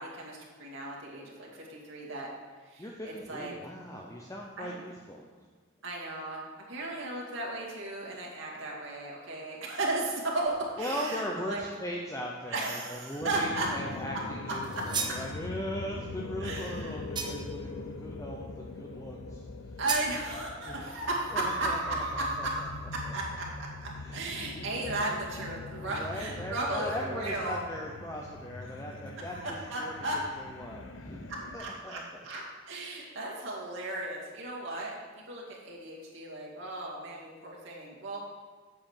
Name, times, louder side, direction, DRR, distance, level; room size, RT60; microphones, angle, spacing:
voice 1, 0.0-2.3 2.6-3.6 4.6-4.8 5.8-11.7 12.5-13.7 13.9-14.1 14.5-14.8 16.4-17.0 19.8-27.6 29.3-30.2 31.3-38.2, right 2 dB, 75° right, -4 dB, 2.2 m, -35 dB
voice 2, 2.8-5.2 10.8-19.4 20.7-21.0 21.3-22.0 22.4-22.5 24.0-24.5 25.9-29.9 30.4-32.3, equal, 15° left, -1 dB, 0.6 m, -39 dB
sound 1, 13.2-31.6, left 3 dB, 75° left, 0.6 m, -42 dB
sound 2, 14.6-15.2 17.1-17.6 19.9-20.1, right 5 dB, 20° right, 0.8 m, -34 dB
7.8 x 4.8 x 7.2 m, 1.5 s
head